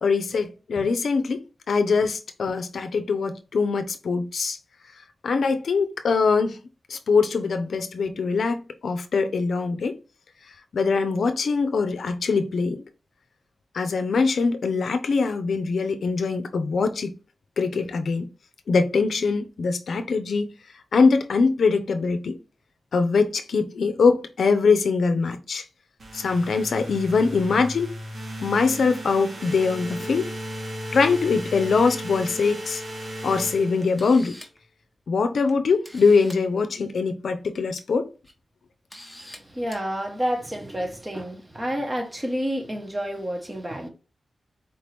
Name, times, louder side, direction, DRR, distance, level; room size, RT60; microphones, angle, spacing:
voice 1, 0.0-4.6 5.2-6.6 6.9-10.0 10.7-12.8 13.7-17.1 17.6-18.3 18.7-20.5 20.9-22.4 22.9-25.6 26.1-27.9 28.4-30.3 30.9-32.8 33.2-34.4 35.1-38.0, left 4 dB, 80° left, 0.5 m, -22 dB
sound 1, 26.0-34.3, equal, 65° right, 1.5 m, -36 dB
Camera, 33.3-33.4 33.8-34.6 35.5-35.6 35.8-36.4 37.6-37.8 38.2-38.3 38.9-39.4 39.7-39.8, equal, 5° right, 1.2 m, -44 dB
voice 2, 39.4-43.9, equal, 20° right, 1.3 m, -29 dB
4.4 x 2.9 x 3.4 m
cardioid pair, 70°, 0 cm